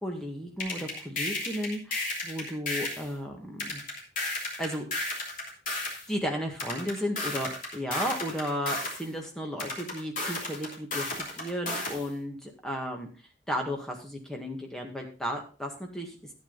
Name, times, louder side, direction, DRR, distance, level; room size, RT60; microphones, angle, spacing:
voice 1, 0.0-3.8 4.6-5.2 6.1-13.1 13.5-16.3, equal, 5° left, 1 dB, 1.8 m, -34 dB
sound 1, 0.6-3.1 3.6-6.0 6.6-9.0 9.6-12.0, left 2 dB, 45° left, 3.2 m, -33 dB
11.5 x 8.8 x 4.0 m, 0.36 s
head